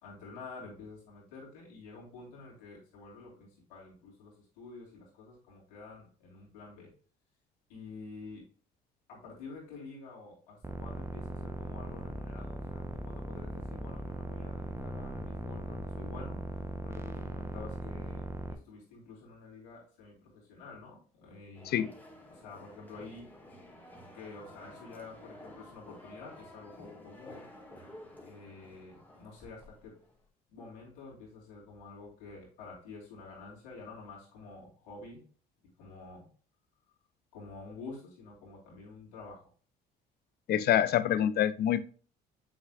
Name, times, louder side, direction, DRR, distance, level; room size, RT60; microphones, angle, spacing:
voice 1, 0.0-6.9 7.7-8.4 9.1-18.2 18.5-21.9 22.3-23.3 24.1-27.5 28.3-30.0 30.5-35.2 35.8-36.3 37.3-39.5, left 3 dB, 85° left, 2.9 m, -49 dB
sound 1, 10.6-18.5, right 2 dB, 15° right, 0.8 m, -39 dB
sound 2, 21.5-30.2, left 1 dB, 10° left, 1.9 m, -52 dB
voice 2, 40.5-41.8, left 11 dB, 55° left, 0.5 m, -26 dB
7.2 x 6.0 x 2.4 m
supercardioid pair, 70°, 20 cm